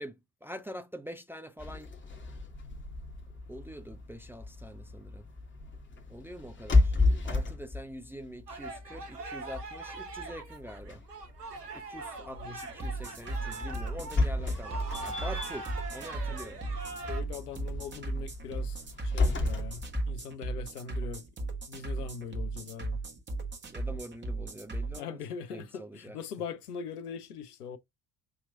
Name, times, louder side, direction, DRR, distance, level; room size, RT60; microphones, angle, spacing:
voice 1, 0.0-1.9 3.5-5.3 6.1-11.0 11.7-16.6 23.7-25.2 25.5-26.2, equal, 5° right, 0.4 m, -45 dB
sound 1, 1.6-20.1, left 3 dB, 25° left, 1.3 m, -33 dB
sound 2, 8.5-17.2, right 3 dB, 85° right, 0.8 m, -42 dB
voice 2, 12.2-12.6 15.2-15.4 17.0-21.2 21.7-23.0 25.0-27.8, left 6 dB, 75° left, 0.7 m, -41 dB
sound 3, 12.6-25.0, right 2 dB, 25° right, 1.2 m, -36 dB
6.5 x 2.9 x 2.5 m
figure-of-eight pair, 55°, 46 cm